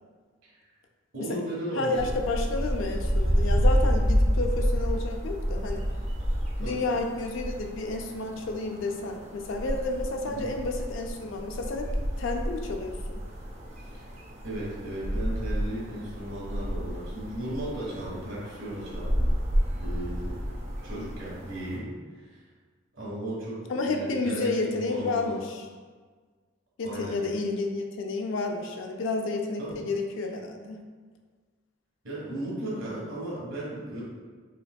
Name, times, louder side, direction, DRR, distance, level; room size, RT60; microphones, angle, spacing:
voice 1, 1.1-2.1 6.6-6.8 10.2-10.5 13.9-14.1 14.4-19.3 19.7-20.4 20.8-21.9 22.2-22.4 22.9-25.3 26.8-27.2 29.6-29.8 32.0-34.0, right 1 dB, 80° right, -6 dB, 1.4 m, -36 dB
voice 2, 1.8-5.9 6.6-11.9 12.2-13.2 20.9-21.1 23.7-25.7 26.8-30.8, left 3 dB, 70° left, 3 dB, 0.4 m, -31 dB
sound 1, 2.0-21.8, equal, 30° right, 0.5 m, -29 dB
4.4 x 2.7 x 2.3 m, 1.5 s
head